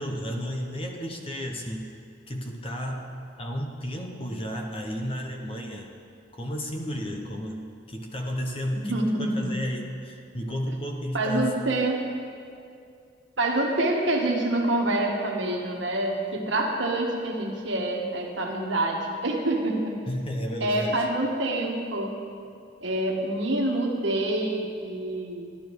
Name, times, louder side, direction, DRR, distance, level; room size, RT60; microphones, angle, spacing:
voice 1, 0.0-1.9 2.3-5.9 6.3-11.6 20.1-21.1, equal, 30° left, 2 dB, 0.9 m, -33 dB
voice 2, 8.7-9.5 11.1-12.0 13.4-20.0 20.6-22.2 22.8-25.5, right 1 dB, 70° right, 1 dB, 1.5 m, -26 dB
12.0 x 11.5 x 4.7 m, 2.4 s
head